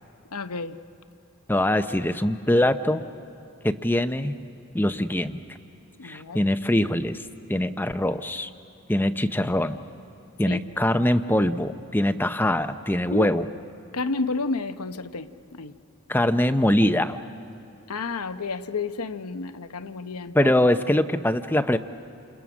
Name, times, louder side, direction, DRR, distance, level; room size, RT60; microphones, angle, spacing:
voice 1, 0.3-0.8 6.0-6.4 10.5-10.6 13.1-13.3 13.9-15.7 17.9-20.5, left 3 dB, 90° left, 10 dB, 0.9 m, -31 dB
voice 2, 1.5-3.0 3.6-4.4 4.7-5.4 6.0-7.2 7.5-8.5 8.9-9.8 10.4-13.4 16.1-17.2 20.3-21.8, left 1 dB, 10° left, 9 dB, 0.6 m, -23 dB
29.0 x 28.5 x 6.2 m, 3.0 s
head